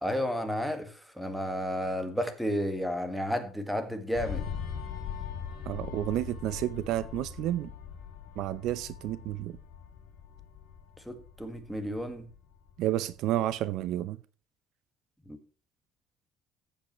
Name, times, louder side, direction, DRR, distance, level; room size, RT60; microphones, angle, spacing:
voice 1, 0.0-4.4 11.1-12.3 15.3-15.4, equal, ahead, 1.8 m, -32 dB
sound 1, 4.1-13.2 13.5-13.8, left 7 dB, 75° left, 2.8 m, -41 dB
voice 2, 5.7-7.7 8.4-9.6 12.8-14.2, right 13 dB, 65° right, 0.6 m, -31 dB
14.5 x 8.3 x 3.1 m
cardioid pair, 155°, 0 cm